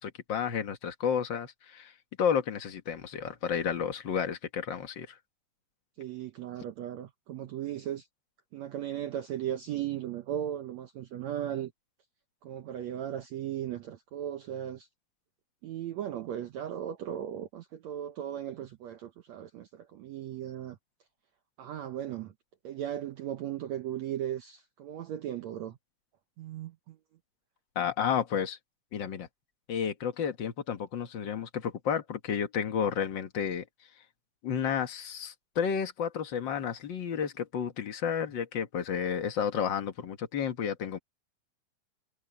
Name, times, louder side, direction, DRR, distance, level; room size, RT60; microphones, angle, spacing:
voice 1, 0.0-1.9 2.2-5.2 27.7-28.6 28.9-29.3 29.7-33.6 34.4-41.0, left 7 dB, 80° left, 1.0 m, -31 dB
voice 2, 6.0-8.1 8.5-11.7 12.4-14.9 15.6-20.8 21.6-22.3 22.6-25.8 26.4-27.0, right 11 dB, 75° right, 1.6 m, -37 dB
omnidirectional pair, 4.2 m